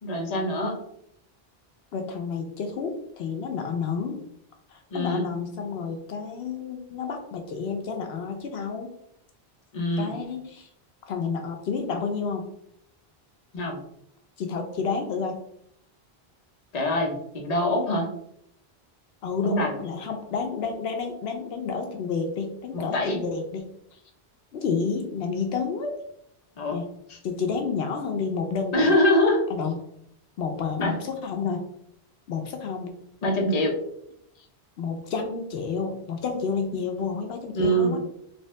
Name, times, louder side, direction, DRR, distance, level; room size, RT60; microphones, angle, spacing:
voice 1, 0.0-0.8 4.9-5.3 9.7-10.1 13.5-13.8 16.7-18.1 19.4-19.8 22.7-23.2 26.6-26.8 27.1-27.2 28.7-29.5 30.8-31.0 33.2-33.8 37.6-38.0, equal, 45° left, 0 dB, 0.8 m, -24 dB
voice 2, 1.9-4.2 4.7-8.9 10.0-10.7 11.1-12.5 14.4-15.4 19.2-23.7 23.9-24.0 24.5-25.9 26.7-26.9 27.2-29.0 29.5-29.7 30.4-31.7 32.3-32.9 34.4-34.5 34.8-38.0, left 5 dB, 80° left, 4 dB, 0.8 m, -30 dB
3.4 x 2.7 x 3.2 m, 0.72 s
omnidirectional pair, 1.0 m